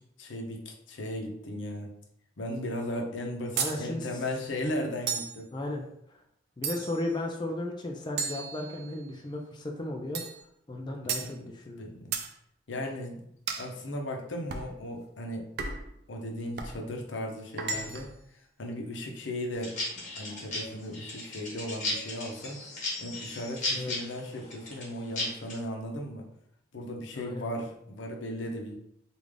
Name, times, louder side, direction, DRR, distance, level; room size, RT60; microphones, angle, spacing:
voice 1, 0.2-1.9 2.4-5.5 11.2-11.5 11.8-12.1 12.7-13.3 13.6-15.4 16.1-18.1 18.6-19.7 20.1-26.3 26.7-28.7, left 1 dB, 80° left, 1 dB, 0.7 m, -36 dB
voice 2, 3.6-4.2 5.5-5.9 6.6-10.2 10.7-11.9 23.7-24.0 27.1-27.5, left 1 dB, 25° left, 1 dB, 0.4 m, -35 dB
sound 1, 3.6-3.8 5.1-5.4 6.6-7.1 8.2-9.1 10.1-10.4 11.1-11.3 12.1-12.3 13.5-13.7 14.5-14.7 15.6-15.9 16.6-16.8 17.6-18.2, right 6 dB, 60° right, 0.4 m, -34 dB
sound 2, 19.5-25.6, left 2 dB, 40° left, 1.3 m, -35 dB
3.5 x 2.5 x 3.3 m, 0.73 s
head